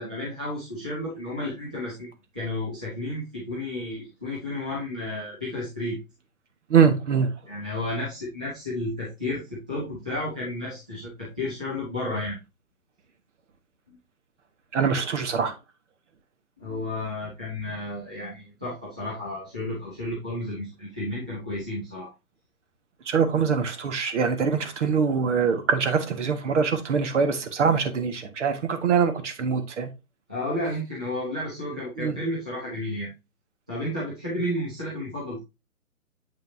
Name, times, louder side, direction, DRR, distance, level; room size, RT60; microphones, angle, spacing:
voice 1, 0.0-2.1 2.3-6.0 7.5-12.4 13.9-14.0 16.6-22.1 30.3-33.1 33.7-35.4, left 1 dB, 5° right, 0.4 m, -32 dB
voice 2, 6.7-7.3 14.7-15.6 23.0-29.9 32.0-32.2, right 6 dB, 55° right, 1.6 m, -23 dB
7.7 x 5.7 x 2.8 m
figure-of-eight pair, 140°, 43 cm